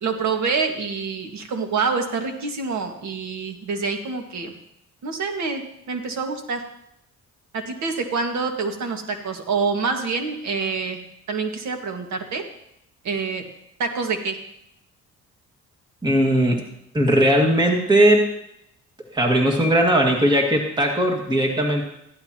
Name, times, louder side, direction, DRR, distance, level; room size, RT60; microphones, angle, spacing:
voice 1, 0.0-4.5 5.0-5.6 5.9-6.6 7.5-11.0 11.3-12.4 13.0-13.4 13.8-14.4, right 4 dB, 65° right, 4 dB, 1.9 m, -26 dB
voice 2, 16.0-16.6 16.9-18.3 19.1-21.9, right 1 dB, 15° right, 0 dB, 2.0 m, -18 dB
15.0 x 11.5 x 3.0 m, 0.78 s
cardioid pair, 90°, 30 cm